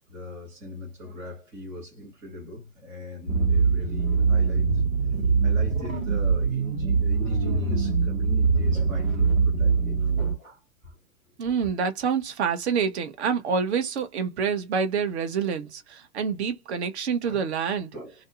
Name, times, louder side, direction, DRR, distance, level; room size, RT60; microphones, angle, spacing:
voice 1, 0.1-4.7 5.4-10.9 11.4-11.6 17.2-17.4 17.9-18.1, equal, 5° right, 0.3 m, -41 dB
sound 1, 3.3-10.3, right 4 dB, 90° right, 1.1 m, -23 dB
voice 2, 11.4-17.9, right 6 dB, 50° right, 0.8 m, -27 dB
2.5 x 2.0 x 2.5 m
figure-of-eight pair, 105°, 42 cm